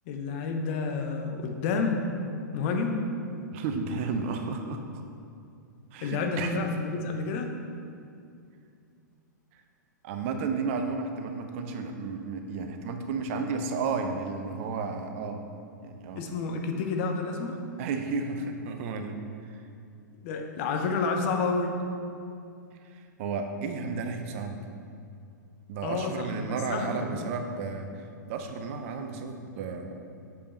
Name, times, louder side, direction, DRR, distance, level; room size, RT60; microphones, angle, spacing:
voice 1, 0.1-2.0 2.5-3.1 6.0-7.5 16.2-17.6 20.2-21.8 25.8-26.1 26.4-27.3, left 4 dB, 40° left, 4 dB, 0.8 m, -29 dB
voice 2, 3.5-4.8 5.9-6.6 10.0-15.4 15.8-16.2 17.8-19.2 19.5-19.6 23.2-24.6 25.7-27.9 28.3-30.1, right 4 dB, 40° right, 5 dB, 0.7 m, -32 dB
7.0 x 5.3 x 4.3 m, 2.4 s
figure-of-eight pair, 105°, 10 cm